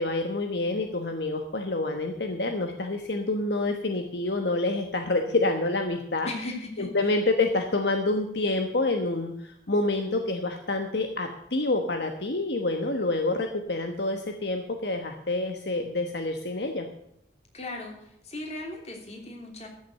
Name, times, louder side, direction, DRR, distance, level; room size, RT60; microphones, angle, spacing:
voice 1, 0.0-6.3 6.8-16.9, left 2 dB, 65° left, 5 dB, 1.2 m, -27 dB
voice 2, 6.2-7.1 17.5-19.7, left 2 dB, 35° left, 2 dB, 3.1 m, -37 dB
13.5 x 7.4 x 7.8 m, 0.75 s
head